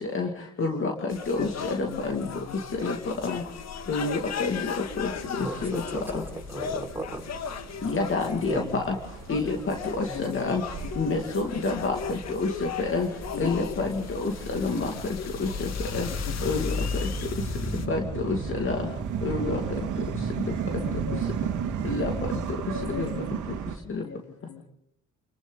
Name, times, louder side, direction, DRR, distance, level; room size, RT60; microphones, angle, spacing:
voice 1, 0.6-0.9 1.3-2.3 2.8-3.0 3.2-3.4 3.9-5.1 5.6-5.8 6.1-6.2 7.8-8.9 9.3-10.6 11.0-13.1 13.4-14.9 15.4-16.1 16.4-16.7 17.9-18.8 19.2-19.6 21.8-22.1 23.0-23.1 23.9-24.0, left 3 dB, 45° left, 2 dB, 2.4 m, -28 dB
sound 1, 1.1-17.9, left 6 dB, 60° left, 1.8 m, -36 dB
voice 2, 1.9-2.3 3.0-3.3 7.8-7.9 8.2-8.9 10.1-10.5 13.3-13.5 13.8-13.9 20.7-21.2 22.7-23.3 24.0-24.7, left 5 dB, 75° left, 2 dB, 3.8 m, -38 dB
sound 2, 4.9-23.8, right 6 dB, 80° right, 2.2 m, -35 dB
voice 3, 5.4-7.3 8.4-8.6, right 1 dB, 5° right, 0 dB, 5.4 m, -35 dB
29.5 x 22.5 x 4.0 m, 0.76 s
cardioid pair, 90°, 30 cm